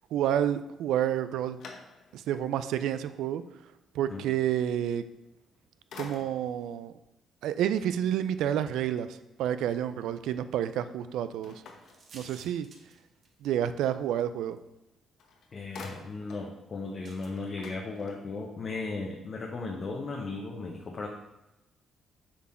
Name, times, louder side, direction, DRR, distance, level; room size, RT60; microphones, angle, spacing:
voice 1, 0.1-1.6 2.1-3.4 3.9-5.0 6.0-6.9 7.4-11.6 12.1-12.7 13.4-14.6, right 10 dB, 85° right, 12 dB, 0.4 m, -29 dB
sound 1, 0.9-2.4 2.9-3.0 5.3-5.6 5.9-6.6 11.4-12.7 14.8-14.9 15.2-16.5 16.9-17.0 17.2-18.5, left 4 dB, 75° left, 1.0 m, -48 dB
sound 2, 11.8-13.7 14.6-14.7 17.0-17.3, right 3 dB, 50° right, 1.0 m, -53 dB
voice 2, 15.5-21.1, left 3 dB, 45° left, 0 dB, 0.9 m, -36 dB
7.3 x 4.1 x 4.4 m, 0.94 s
cardioid pair, 90°, 0 cm